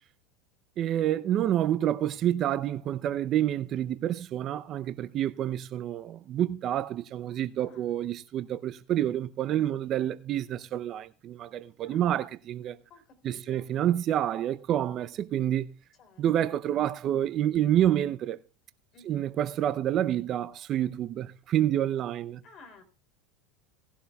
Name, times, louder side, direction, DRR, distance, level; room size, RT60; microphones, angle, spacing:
voice 1, 0.8-12.8 13.2-15.7 16.2-18.4 19.0-22.4, right 11 dB, 45° right, 0.6 m, -28 dB
voice 2, 7.6-8.0 9.7-9.9 11.8-12.1 12.9-13.7 16.0-16.5 18.9-19.3 22.4-22.8, left 4 dB, 45° left, 3.1 m, -55 dB
18.5 x 11.0 x 2.3 m
hypercardioid pair, 100°, 0 cm